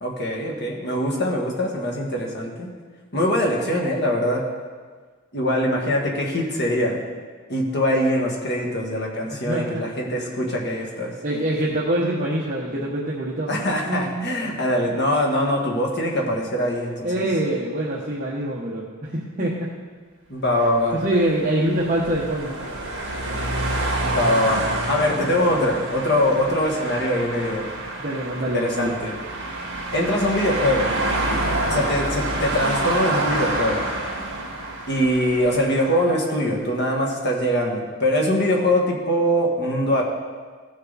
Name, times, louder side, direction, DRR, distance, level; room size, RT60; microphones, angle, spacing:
voice 1, 0.0-2.7 3.1-4.4 5.3-7.0 7.5-11.1 13.5-17.2 20.3-21.0 24.0-27.7 28.5-29.2 29.9-30.9 31.7-33.8 34.9-40.0, left 1 dB, 50° left, -1 dB, 1.8 m, -22 dB
voice 2, 9.3-9.8 11.2-13.5 13.8-14.3 17.0-19.7 20.9-22.6 28.0-29.0, right 1 dB, 40° right, -6 dB, 1.2 m, -25 dB
sound 1, 20.8-36.2, right 2 dB, 55° right, 2.3 m, -28 dB
15.5 x 6.6 x 4.1 m, 1.5 s
head